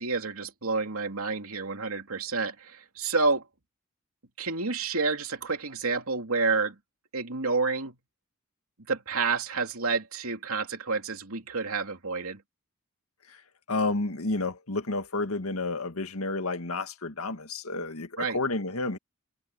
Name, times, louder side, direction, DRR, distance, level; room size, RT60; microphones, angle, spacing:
voice 1, 0.0-3.4 4.4-6.8 7.1-8.0 8.9-12.4 18.2-18.4, right 4 dB, 80° right, 2.9 m, -29 dB
voice 2, 13.7-19.0, left 2 dB, 85° left, 1.9 m, -30 dB
head